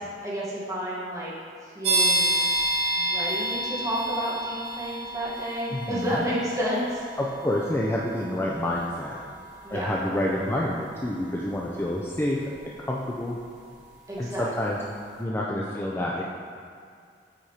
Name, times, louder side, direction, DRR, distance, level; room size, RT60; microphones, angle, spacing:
voice 1, 0.2-1.3 1.6-2.5 2.9-7.1 9.6-9.9 14.1-14.5, equal, 20° right, -7 dB, 1.3 m, -30 dB
sound 1, 1.8-14.4, right 1 dB, 85° right, 0.9 m, -31 dB
voice 2, 5.7-6.3 7.2-9.2 9.7-13.4 14.2-14.8 15.2-16.2, left 1 dB, 15° left, -4 dB, 0.4 m, -28 dB
7.7 x 5.1 x 2.8 m, 2.2 s
head